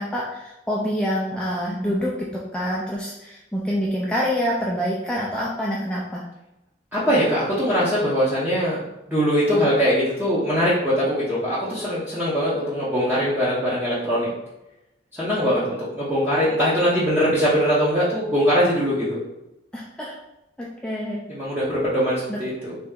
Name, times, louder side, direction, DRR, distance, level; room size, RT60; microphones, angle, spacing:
voice 1, 0.0-6.2 19.7-20.1 20.6-21.2 22.3-22.4, equal, 5° left, -5 dB, 0.4 m, -26 dB
voice 2, 6.9-8.8 9.1-14.3 15.1-19.2 21.3-22.8, equal, 10° right, -9 dB, 0.7 m, -21 dB
3.2 x 3.0 x 3.6 m, 0.91 s
head